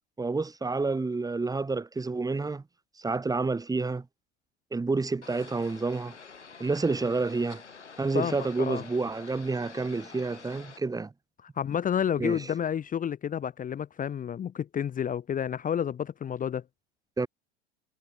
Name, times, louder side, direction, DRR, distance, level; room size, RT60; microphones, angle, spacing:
voice 1, 0.2-2.6 3.0-4.0 4.7-6.1 6.6-7.6 8.0-11.1 12.2-12.4 17.2-17.3, right 3 dB, 10° right, 1.5 m, -29 dB
sound 1, 5.2-10.8, left 5 dB, 85° left, 7.1 m, -48 dB
voice 2, 8.1-8.8 11.6-16.6, left 8 dB, 25° left, 1.1 m, -30 dB
figure-of-eight pair, 85°, 34 cm